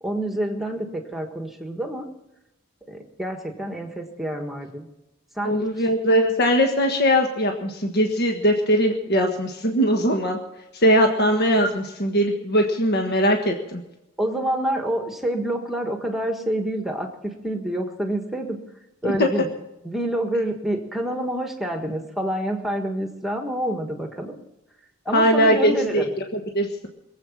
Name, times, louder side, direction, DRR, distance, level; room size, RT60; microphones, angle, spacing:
voice 1, 0.0-2.1 2.8-4.9 5.3-5.9 14.2-18.6 19.0-19.5 19.8-24.4 25.0-26.1, right 1 dB, ahead, 3 dB, 1.5 m, -27 dB
voice 2, 5.4-10.4 10.7-13.8 19.0-19.3 25.1-26.0 26.5-26.9, equal, 50° left, 3 dB, 1.5 m, -20 dB
22.0 x 8.0 x 7.3 m, 0.92 s
head